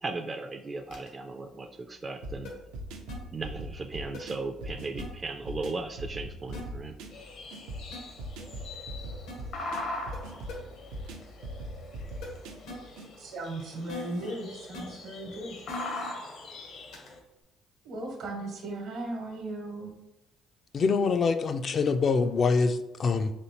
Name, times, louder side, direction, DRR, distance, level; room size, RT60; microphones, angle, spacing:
voice 1, 0.0-2.5 3.3-6.9, right 3 dB, 30° right, 4 dB, 0.3 m, -36 dB
sound 1, 0.9-1.1 2.4-2.5 3.1-3.2 4.1-4.2 5.0-5.1 6.5-6.6 7.9-8.0 9.3-9.4 10.1-10.2 10.5-10.6 12.2-12.3 12.7-12.8 13.9-14.3 14.7-14.8 15.7-16.1 16.9-17.1, left 2 dB, 85° left, 1.1 m, -41 dB
sound 2, 2.2-13.1, right 1 dB, 90° right, 0.5 m, -41 dB
sound 3, 7.1-17.2, left 2 dB, 65° left, 0.8 m, -42 dB
voice 2, 13.2-15.5 17.8-19.9, right 2 dB, 75° right, 2 dB, 1.0 m, -37 dB
voice 3, 20.7-23.3, left 4 dB, 50° left, 9 dB, 0.3 m, -25 dB
4.2 x 3.1 x 2.9 m, 0.94 s
supercardioid pair, 80°, 0 cm